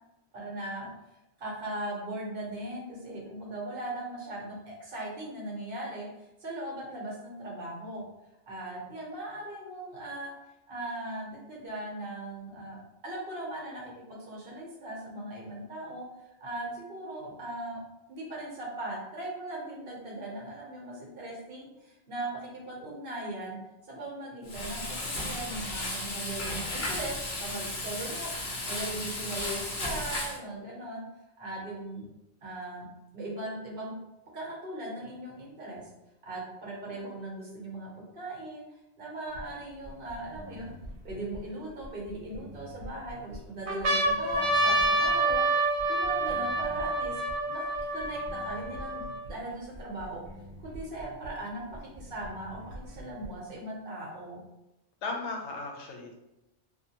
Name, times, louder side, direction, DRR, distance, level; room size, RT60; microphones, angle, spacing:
voice 1, 0.3-0.9 1.4-8.0 8.5-10.3 10.7-12.8 13.0-16.1 16.4-17.8 18.1-23.6 23.9-31.0 31.4-32.1 32.4-32.9 33.1-34.0 34.3-35.9 36.2-37.9 38.1-38.6 39.0-40.7 41.0-47.2 47.5-50.2 50.6-54.4, right 1 dB, 55° right, -4 dB, 1.0 m, -39 dB
Frying (food), 24.5-30.4, left 1 dB, 50° left, 0.8 m, -34 dB
sound 1, 39.4-39.5 40.1-41.4 42.1-42.9 43.3-43.4 43.7-49.3 50.0-50.1 50.3-51.3 52.2-53.3, right 1 dB, 85° right, 0.9 m, -28 dB
voice 2, 55.0-56.1, left 3 dB, 80° left, 1 dB, 0.9 m, -36 dB
2.7 x 2.2 x 2.8 m, 0.93 s
omnidirectional pair, 1.1 m